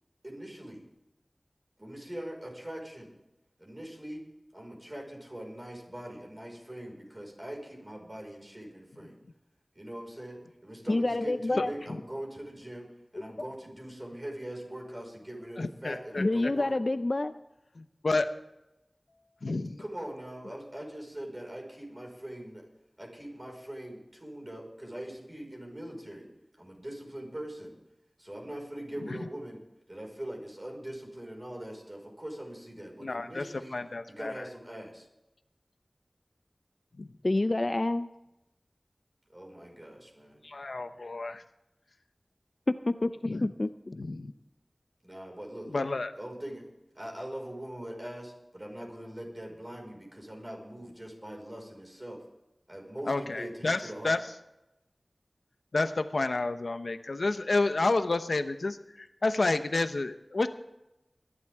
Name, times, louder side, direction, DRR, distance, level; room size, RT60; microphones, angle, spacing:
voice 1, 0.2-0.8 1.8-3.1 3.6-4.2 4.5-9.2 9.7-16.7 19.8-22.6 23.0-26.3 26.6-27.7 28.2-29.6 29.9-33.8 34.1-35.1 39.3-40.4 45.0-45.9 46.1-46.6 46.9-52.2 52.7-54.2, right 1 dB, 30° right, 0 dB, 5.2 m, -42 dB
voice 2, 10.9-11.7 16.2-17.3 37.2-38.1 42.9-43.9, left 2 dB, 50° left, 10 dB, 0.5 m, -28 dB
voice 3, 15.6-16.2 17.8-18.3 19.4-19.8 29.1-29.2 33.0-33.4 33.7-34.3 37.0-37.1 40.4-41.4 43.2-43.5 43.9-44.3 45.7-46.1 53.1-53.8 54.0-54.2 55.7-60.5, left 3 dB, 90° left, 9 dB, 0.9 m, -30 dB
22.0 x 11.5 x 3.6 m, 0.91 s
wide cardioid pair, 55°, 0 cm